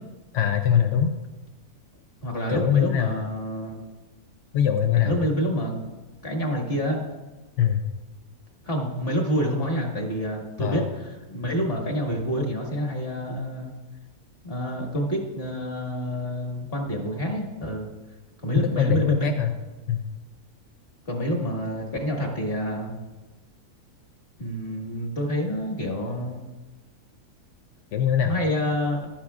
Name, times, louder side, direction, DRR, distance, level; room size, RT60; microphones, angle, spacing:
voice 1, 0.3-1.1 2.5-3.2 4.5-5.1 7.6-7.8 10.6-10.9 18.8-19.5 19.9-20.0 27.9-28.3, left 9 dB, 65° left, 5 dB, 0.7 m, -22 dB
voice 2, 2.2-3.9 5.0-5.9 6.2-7.0 8.6-13.7 14.4-17.9 18.4-19.3 21.0-22.9 24.4-26.4 28.2-29.1, equal, 40° left, 0 dB, 1.8 m, -28 dB
14.5 x 11.5 x 2.4 m, 1.2 s
omnidirectional pair, 1.7 m